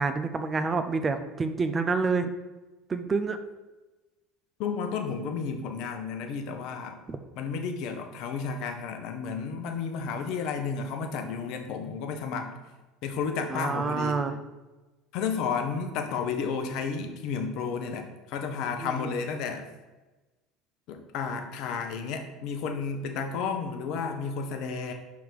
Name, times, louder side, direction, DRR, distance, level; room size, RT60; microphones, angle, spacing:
voice 1, 0.0-2.3 2.9-3.4 7.1-7.2 13.5-14.4 18.8-18.9, right 4 dB, 30° right, 9 dB, 0.6 m, -28 dB
voice 2, 4.6-7.0 7.4-12.5 13.0-14.2 15.1-19.6 20.9-24.9, left 5 dB, 60° left, 6 dB, 0.8 m, -32 dB
5.9 x 3.5 x 4.7 m, 1.1 s
hypercardioid pair, 70°, 0 cm